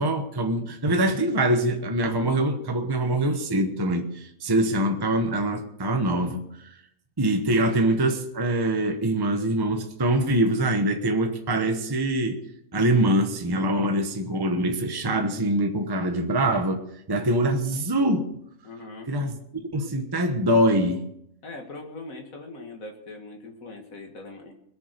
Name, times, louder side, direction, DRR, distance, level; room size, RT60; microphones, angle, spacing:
voice 1, 0.0-6.7 7.2-12.4 12.7-16.8 17.1-18.3 19.1-19.4 19.7-21.1, right 1 dB, 20° right, 1.1 m, -24 dB
voice 2, 18.6-19.1 21.4-24.5, left 2 dB, 90° left, 2.3 m, -41 dB
21.0 x 7.2 x 6.7 m
omnidirectional pair, 1.4 m